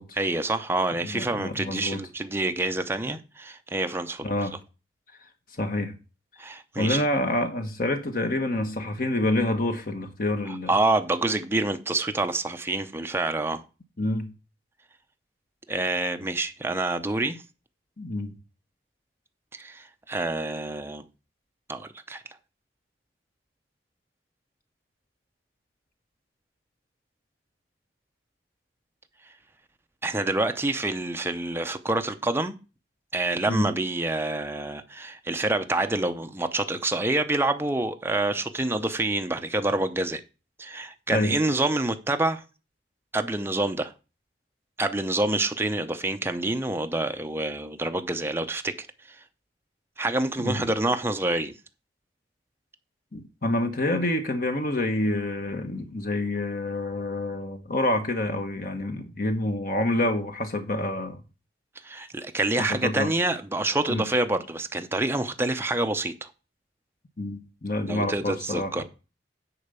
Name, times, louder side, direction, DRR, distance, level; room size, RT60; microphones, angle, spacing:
voice 1, 0.1-4.3 6.4-7.0 10.5-13.6 15.7-17.4 19.5-21.0 21.7-22.2 30.0-32.6 33.1-40.2 40.6-42.4 43.1-43.9 44.8-49.2 50.0-51.5 61.8-66.3 67.9-68.8, right 2 dB, 15° right, 0.7 m, -27 dB
voice 2, 1.0-2.0 4.2-4.6 5.6-6.0 6.8-10.7 14.0-14.3 18.0-18.3 33.5-33.7 41.1-41.4 50.4-50.6 53.1-61.2 62.6-63.1 63.9-64.0 67.2-68.8, left 1 dB, 50° left, 1.1 m, -27 dB
9.9 x 4.6 x 6.8 m
head